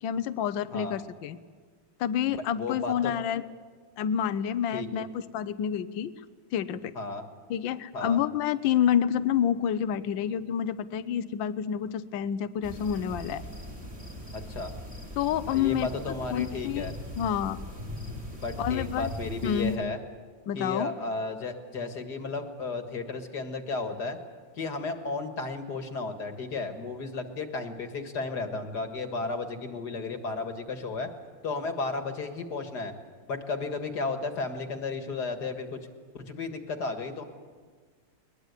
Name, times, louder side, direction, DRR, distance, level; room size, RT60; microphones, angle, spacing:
voice 1, 0.0-1.4 2.0-3.4 4.0-6.1 6.5-6.9 7.5-13.4 15.2-15.9 16.3-16.9 17.2-17.6 18.6-19.1 19.4-19.7 20.5-20.9, left 9 dB, 65° left, 14 dB, 1.5 m, -28 dB
voice 2, 2.6-3.1 4.7-5.0 7.0-7.2 7.9-8.2 14.3-14.7 15.5-16.9 18.4-20.0 20.5-24.2 24.6-31.1 31.4-32.9 33.3-35.8 36.1-37.2, left 3 dB, 50° left, 6 dB, 2.2 m, -33 dB
sound 1, 12.6-19.8, equal, 30° right, 4.0 m, -40 dB
22.0 x 21.0 x 8.2 m, 1.5 s
omnidirectional pair, 2.4 m